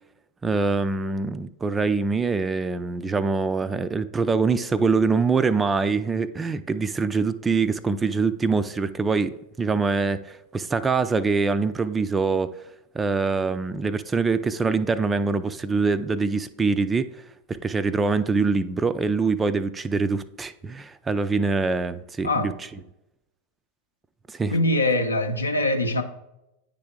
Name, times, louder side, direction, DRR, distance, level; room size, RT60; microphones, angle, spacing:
voice 1, 0.4-12.6 12.9-17.1 17.5-22.5 24.3-24.6, right 4 dB, 15° right, 0.3 m, -24 dB
voice 2, 24.5-26.0, left 1 dB, 80° left, 0.6 m, -23 dB
9.7 x 3.4 x 3.7 m
figure-of-eight pair, 90°, 0 cm